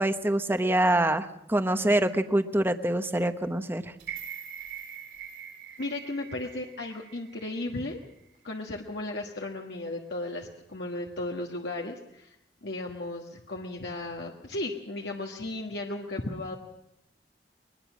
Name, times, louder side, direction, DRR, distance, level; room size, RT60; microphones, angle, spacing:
voice 1, 0.0-3.9, right 1 dB, 15° right, 9 dB, 0.9 m, -25 dB
sound 1, 4.0-8.1 8.5-8.6, right 9 dB, 75° right, 3.7 m, -43 dB
voice 2, 5.8-8.0 8.4-12.3 12.6-16.6, left 2 dB, 70° left, 1 dB, 1.5 m, -35 dB
22.5 x 20.0 x 6.2 m, 0.83 s
head